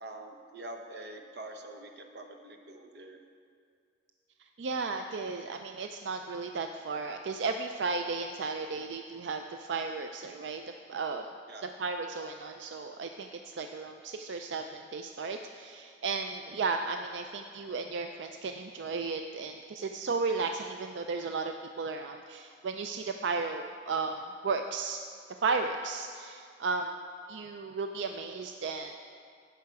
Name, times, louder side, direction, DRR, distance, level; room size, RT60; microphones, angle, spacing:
voice 1, 0.0-3.2 11.5-11.7, right 2 dB, 65° right, 4 dB, 1.0 m, -45 dB
voice 2, 4.6-10.6 10.9-11.3 11.6-25.0 25.4-27.0 27.3-29.0, right 4 dB, 90° right, 5 dB, 0.4 m, -34 dB
15.5 x 5.7 x 4.7 m, 2.2 s
head